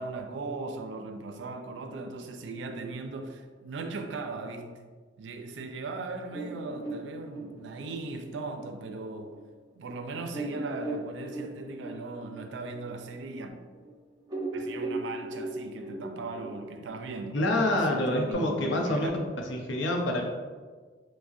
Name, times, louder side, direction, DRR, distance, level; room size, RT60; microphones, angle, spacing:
voice 1, 0.0-4.8 5.2-9.4 9.7-13.5 14.5-17.4 17.7-19.1, right 3 dB, 75° right, 0.4 m, -38 dB
sound 1, 6.3-9.4 9.8-9.9 10.3-13.9 14.2-18.3, right 2 dB, 25° right, 0.7 m, -38 dB
voice 2, 17.3-19.1 19.5-20.3, left 1 dB, 90° left, 0.6 m, -27 dB
4.8 x 2.1 x 2.6 m
head